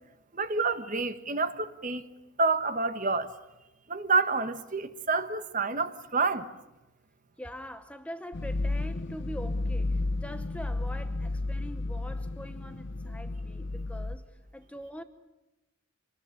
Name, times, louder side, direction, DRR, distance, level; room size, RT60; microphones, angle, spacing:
voice 1, 0.3-2.0 2.4-3.3 3.9-6.5, right 4 dB, 35° right, 1.4 m, -28 dB
voice 2, 7.4-15.0, equal, 5° left, 1.0 m, -43 dB
sound 1, 8.3-14.2, left 2 dB, 55° left, 0.9 m, -32 dB
26.5 x 21.0 x 9.8 m
head